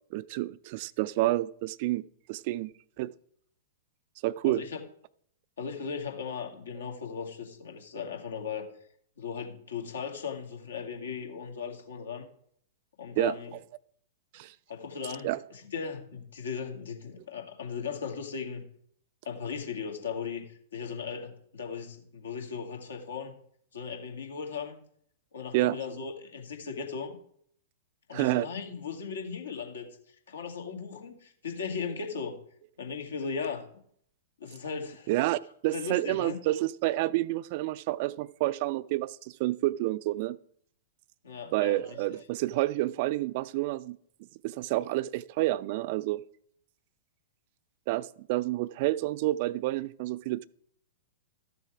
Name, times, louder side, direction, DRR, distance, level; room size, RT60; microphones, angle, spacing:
voice 1, 0.1-2.0 2.3-2.7 3.0-3.1 4.2-4.6 13.2-13.3 14.3-14.5 15.2-15.4 25.5-25.8 28.1-28.5 35.1-40.4 41.5-44.0 44.4-46.2 47.9-50.5, right 17 dB, 45° right, 17 dB, 0.4 m, -29 dB
voice 2, 4.4-4.8 5.6-8.7 9.2-12.2 13.0-13.5 14.7-18.6 19.2-23.4 23.7-24.8 25.3-27.2 28.1-32.4 32.8-33.7 34.4-35.1 35.7-36.4 41.2-41.8, left 6 dB, 70° left, 3 dB, 2.2 m, -37 dB
13.5 x 6.8 x 4.8 m, 0.63 s
figure-of-eight pair, 105°, 0 cm